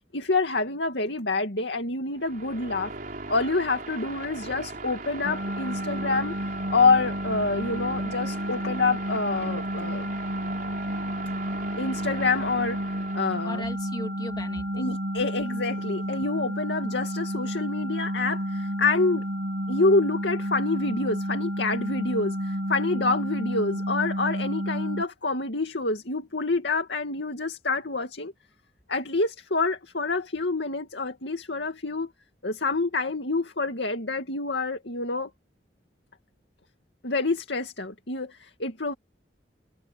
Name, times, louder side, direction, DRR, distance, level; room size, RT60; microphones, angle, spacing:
voice 1, 0.1-2.9 3.3-6.3 6.7-10.1 11.8-13.6 14.7-19.3 19.7-28.3 28.9-32.1 32.4-35.3 37.0-38.9, left 3 dB, 75° left, 2.4 m, -27 dB
sound 1, 2.1-13.7, right 3 dB, 55° right, 4.1 m, -39 dB
sound 2, 5.2-25.0, equal, 80° right, 1.9 m, -31 dB
voice 2, 13.4-15.0, left 1 dB, 25° left, 3.1 m, -37 dB
head